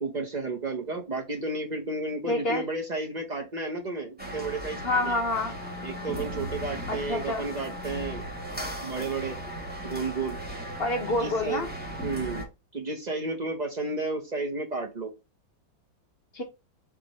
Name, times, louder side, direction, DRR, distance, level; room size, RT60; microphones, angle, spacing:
voice 1, 0.0-5.2 5.8-8.2 8.8-9.4 9.8-10.4 11.2-11.6 12.0-12.5 12.7-15.1, right 3 dB, 65° right, 2 dB, 0.4 m, -32 dB
voice 2, 2.3-2.7 4.8-5.5 6.9-7.4 10.8-11.7 16.3-16.4, left 2 dB, 50° left, 4 dB, 0.7 m, -27 dB
sound 1, 4.2-12.4, right 1 dB, 5° right, 0.8 m, -37 dB
4.3 x 3.0 x 4.0 m, 0.26 s
omnidirectional pair, 2.1 m